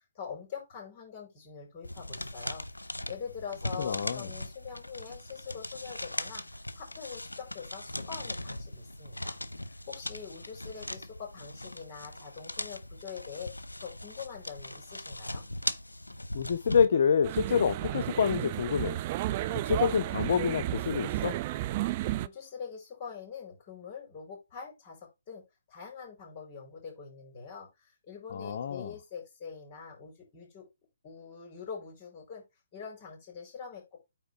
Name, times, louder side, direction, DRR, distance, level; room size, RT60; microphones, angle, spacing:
voice 1, 0.1-6.4 6.7-9.4 9.9-13.5 13.8-15.4 22.2-25.4 25.7-30.7 31.0-32.4 32.7-34.0, left 6 dB, 35° left, 4.8 m, -44 dB
sound 1, 1.8-16.9, left 1 dB, 85° left, 0.7 m, -39 dB
voice 2, 3.8-4.3 16.3-19.0 19.5-21.3 28.3-28.9, left 6 dB, 50° left, 0.7 m, -27 dB
sound 2, 17.2-22.3, right 15 dB, 35° right, 0.5 m, -32 dB
9.0 x 3.7 x 4.8 m
figure-of-eight pair, 130°, 0 cm